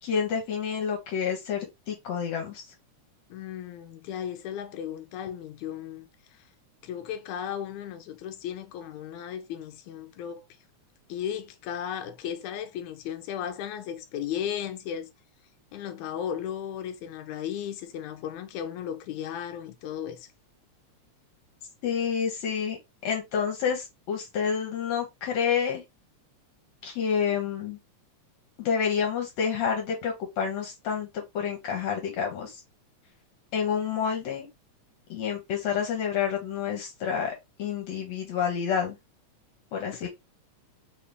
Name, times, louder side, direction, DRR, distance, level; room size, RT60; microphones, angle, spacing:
voice 1, 0.0-2.6 21.8-22.8 23.0-25.8 26.8-27.8 28.6-32.6 33.5-34.5 35.1-39.0 39.7-40.1, left 7 dB, 70° left, 2.2 m, -29 dB
voice 2, 3.3-6.1 6.8-10.4 11.1-15.1 15.7-20.3 39.9-40.1, left 9 dB, 90° left, 2.1 m, -35 dB
4.6 x 2.9 x 3.4 m
omnidirectional pair, 3.4 m